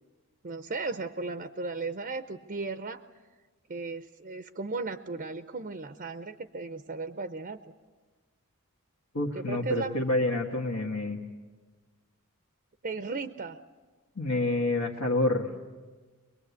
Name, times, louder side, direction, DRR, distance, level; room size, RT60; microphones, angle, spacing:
voice 1, 0.4-3.0 3.7-7.7 9.3-10.0 12.8-13.6, right 3 dB, 40° right, 10 dB, 0.6 m, -36 dB
voice 2, 9.1-11.2 14.2-15.5, left 2 dB, 80° left, -2 dB, 1.6 m, -28 dB
23.0 x 22.5 x 8.3 m, 1.4 s
head